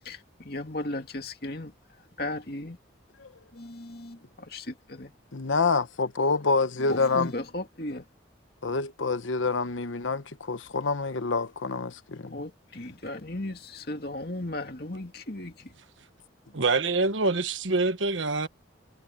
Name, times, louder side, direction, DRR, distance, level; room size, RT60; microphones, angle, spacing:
voice 1, 0.5-1.7 2.2-2.8 3.6-4.2 4.5-5.1 6.9-8.0 12.3-15.5, left 1 dB, 55° left, 2.5 m, -35 dB
voice 2, 5.3-7.4 8.6-12.4, left 4 dB, 85° left, 1.0 m, -27 dB
voice 3, 16.5-18.5, right 3 dB, 85° right, 1.3 m, -25 dB
head